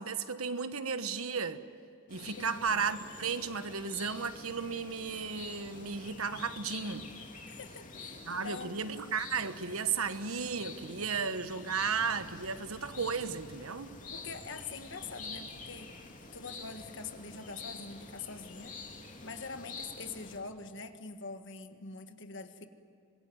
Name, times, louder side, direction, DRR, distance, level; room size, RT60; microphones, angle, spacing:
voice 1, 0.0-1.6 2.1-7.1 8.3-13.9, right 5 dB, 80° right, 1.2 m, -34 dB
sound 1, 2.1-20.4, left 3 dB, 35° left, 2.8 m, -48 dB
voice 2, 2.2-2.8 7.5-8.8 14.1-15.9 16.3-18.8 19.2-22.6, left 4 dB, 60° left, 1.6 m, -44 dB
26.0 x 21.5 x 9.5 m
head